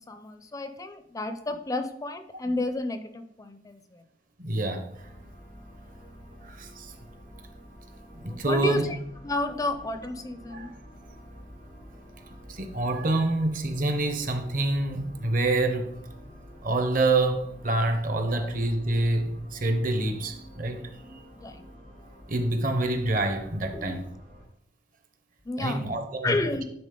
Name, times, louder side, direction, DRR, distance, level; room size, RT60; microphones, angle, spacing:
voice 1, 0.1-4.0 8.2-9.0 9.2-10.7 18.3-18.5 21.4-21.7 23.7-24.1 25.5-25.9 26.2-26.6, left 2 dB, 20° left, 0.4 m, -31 dB
voice 2, 4.4-4.9 6.4-6.9 8.1-8.9 10.5-10.7 12.5-16.0 16.6-20.9 22.3-24.0 25.6-26.4, right 2 dB, 50° right, 0.9 m, -27 dB
sound 1, 4.9-24.5, equal, 70° right, 3.2 m, -48 dB
9.8 x 3.9 x 3.8 m
head